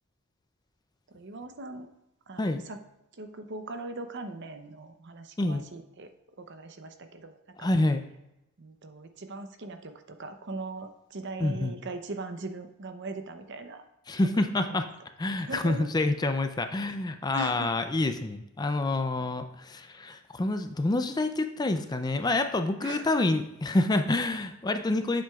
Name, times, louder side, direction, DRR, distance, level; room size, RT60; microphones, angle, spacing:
voice 1, 1.1-1.9 2.3-2.8 3.1-6.1 6.4-7.7 8.6-13.8 14.3-14.9 15.4-15.9 17.3-17.7 22.8-23.1, right 2 dB, 55° right, 7 dB, 0.7 m, -40 dB
voice 2, 7.6-8.0 11.4-11.7 14.1-14.8 15.2-25.2, left 2 dB, 20° left, 8 dB, 0.4 m, -27 dB
8.7 x 7.6 x 2.4 m, 0.88 s
head